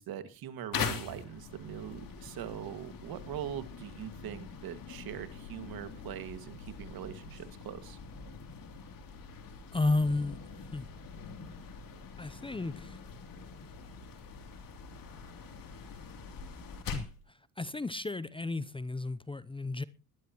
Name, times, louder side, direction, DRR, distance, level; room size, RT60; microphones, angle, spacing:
voice 1, 0.0-8.0, right 10 dB, 65° right, 2.1 m, -42 dB
sound 1, 0.7-17.2, left 5 dB, 60° left, 3.2 m, -43 dB
voice 2, 9.7-10.4 10.7-10.9 12.2-12.9 16.9-17.1 17.6-19.8, left 3 dB, 15° left, 0.7 m, -32 dB
20.0 x 11.5 x 3.0 m
supercardioid pair, 85°, 38 cm